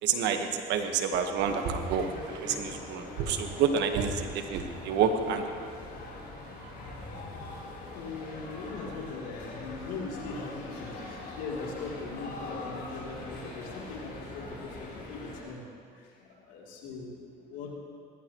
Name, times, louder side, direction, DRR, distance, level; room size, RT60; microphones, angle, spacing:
voice 1, 0.0-5.7, right 6 dB, 70° right, 6 dB, 1.4 m, -29 dB
sound 1, 1.4-15.4, left 2 dB, 60° left, 3.9 m, -43 dB
voice 2, 6.4-6.9 7.8-17.7, left 4 dB, 80° left, -3 dB, 3.2 m, -41 dB
20.5 x 14.0 x 3.1 m, 2.2 s
supercardioid pair, 90°, 19 cm